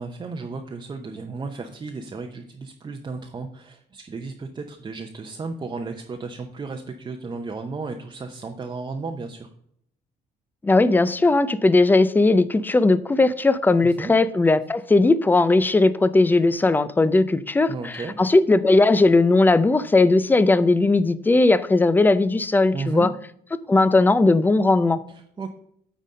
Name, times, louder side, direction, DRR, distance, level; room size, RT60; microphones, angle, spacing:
voice 1, 0.0-9.5 13.8-14.1 17.7-18.2 22.7-23.1 25.1-25.5, right 4 dB, 25° right, 0.8 m, -34 dB
voice 2, 10.6-17.9 18.2-23.1 23.7-25.0, left 2 dB, 10° left, 0.5 m, -18 dB
9.2 x 4.1 x 5.0 m
cardioid pair, 110°, 17 cm